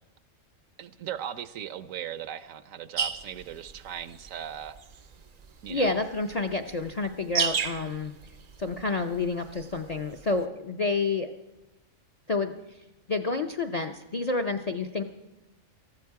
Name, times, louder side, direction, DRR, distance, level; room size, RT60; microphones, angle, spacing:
voice 1, 0.8-4.8 5.6-6.0, right 9 dB, 75° right, 14 dB, 1.1 m, -38 dB
sound 1, 3.0-10.4, right 7 dB, 55° right, 0.4 m, -35 dB
voice 2, 5.7-8.1 8.6-11.3 12.3-12.5 13.1-15.0, left 3 dB, 45° left, 7 dB, 0.5 m, -29 dB
18.5 x 13.5 x 4.7 m, 1.0 s
omnidirectional pair, 1.4 m